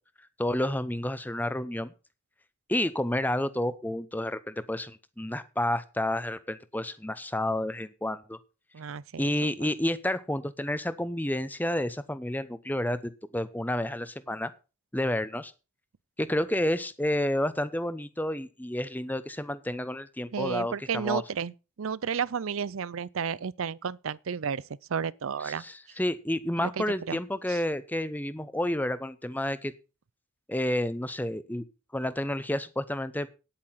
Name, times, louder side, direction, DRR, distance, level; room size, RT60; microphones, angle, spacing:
voice 1, 0.4-1.9 2.7-8.4 9.2-14.5 14.9-15.5 16.2-21.2 25.4-29.7 30.5-31.6 31.9-33.3, left 1 dB, 10° left, 0.7 m, -30 dB
voice 2, 8.7-9.7 20.3-24.6 24.9-25.7 26.6-27.2 27.5-27.6, right 6 dB, 70° right, 0.5 m, -32 dB
9.7 x 8.6 x 5.7 m
head